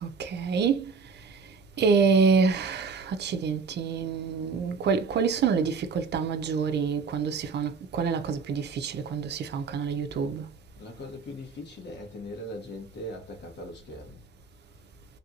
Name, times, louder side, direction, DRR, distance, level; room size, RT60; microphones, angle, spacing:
voice 1, 0.0-0.9 1.2-1.3 1.8-10.5, right 5 dB, 60° right, 0.6 m, -26 dB
voice 2, 10.8-14.2, left 1 dB, 60° left, 1.6 m, -40 dB
3.3 x 2.5 x 2.8 m
cardioid pair, 90°, 20 cm